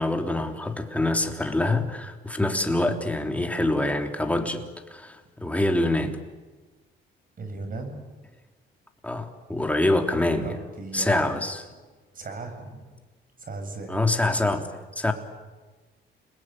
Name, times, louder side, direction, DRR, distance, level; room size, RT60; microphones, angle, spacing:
voice 1, 0.0-4.6 4.9-6.2 9.0-10.6 10.9-11.6 13.9-15.1, left 2 dB, 5° left, 3 dB, 3.4 m, -25 dB
voice 2, 7.4-8.0 10.4-11.2 12.1-12.8 13.4-14.0, right 3 dB, 45° right, 6 dB, 7.4 m, -37 dB
30.0 x 21.0 x 9.2 m, 1.3 s
cardioid pair, 90°, 20 cm